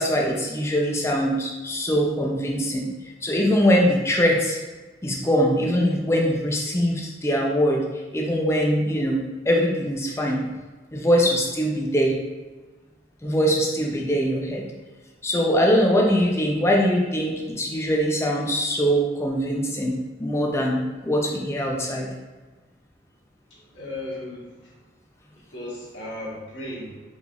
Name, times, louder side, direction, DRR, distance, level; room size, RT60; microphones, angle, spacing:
voice 1, 0.0-2.9 3.2-4.6 5.0-10.4 10.9-12.2 13.2-14.7 15.2-22.1, equal, 15° left, -1 dB, 0.4 m, -22 dB
voice 2, 23.5-24.7 25.5-27.0, left 1 dB, 70° left, -6 dB, 1.1 m, -36 dB
3.7 x 3.3 x 2.3 m, 1.3 s
head